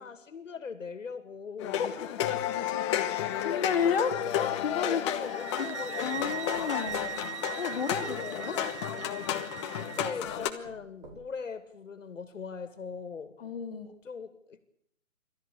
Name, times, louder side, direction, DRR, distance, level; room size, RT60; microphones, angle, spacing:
voice 1, 0.0-2.2 3.5-4.0 4.6-6.8 7.4-8.8 9.9-13.3 14.0-14.6, left 5 dB, 70° left, 12 dB, 2.4 m, -41 dB
sound 1, 1.6-10.5, left 11 dB, 20° left, 1.3 m, -32 dB
voice 2, 3.4-5.1 6.0-7.1 7.6-8.5 13.4-13.9, left 7 dB, 45° left, 8 dB, 2.6 m, -31 dB
sound 2, 5.0-5.4 6.1-8.1 9.1-9.2 9.8-9.9 10.2-11.6 12.1-12.2 12.5-12.6, right 2 dB, 35° right, 5.2 m, -52 dB
sound 3, 5.3-10.2, right 9 dB, 60° right, 0.8 m, -40 dB
27.5 x 13.5 x 8.4 m, 0.73 s
hypercardioid pair, 155°, 39 cm